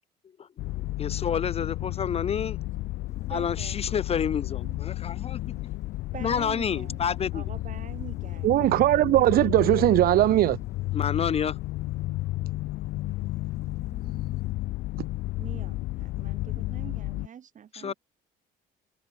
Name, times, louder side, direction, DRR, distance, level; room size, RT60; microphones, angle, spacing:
voice 1, 0.4-2.6 3.3-5.4 6.2-7.4 10.9-11.6 17.7-17.9, left 7 dB, 35° left, 0.8 m, -29 dB
sound 1, 0.6-17.3, left 18 dB, 80° left, 1.3 m, -32 dB
sound 2, 3.1-14.5, left 3 dB, 15° left, 2.8 m, -55 dB
voice 2, 3.3-3.8 6.1-9.5 15.4-17.9, right 8 dB, 50° right, 5.6 m, -45 dB
voice 3, 8.4-10.6, right 15 dB, 65° right, 0.5 m, -20 dB
cardioid pair, 110°, 17 cm